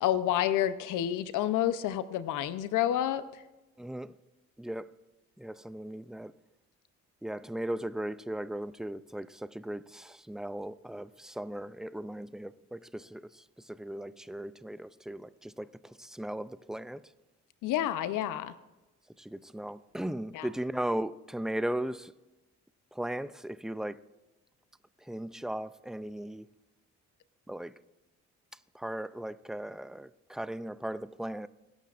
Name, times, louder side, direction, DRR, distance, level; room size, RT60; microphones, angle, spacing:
voice 1, 0.0-3.4 17.6-18.5 20.3-20.5, left 11 dB, 90° left, 0.8 m, -29 dB
voice 2, 3.8-4.1 4.6-4.9 5.4-6.3 7.2-17.0 19.2-22.1 22.9-24.0 25.0-26.5 27.5-27.7 28.7-31.5, right 1 dB, ahead, 0.3 m, -37 dB
22.0 x 11.5 x 2.5 m
cardioid pair, 90°, 30 cm